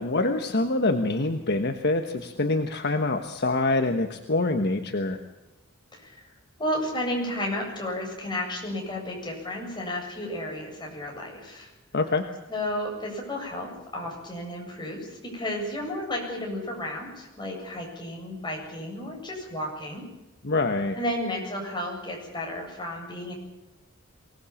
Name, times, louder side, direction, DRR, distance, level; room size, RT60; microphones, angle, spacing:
voice 1, 0.0-5.2 11.9-12.2 20.4-21.0, left 2 dB, 55° left, 6 dB, 1.3 m, -25 dB
voice 2, 5.9-6.2 6.6-11.7 12.5-20.0 20.9-23.3, left 1 dB, 20° left, 0 dB, 7.8 m, -32 dB
24.0 x 19.0 x 7.3 m, 1.0 s
head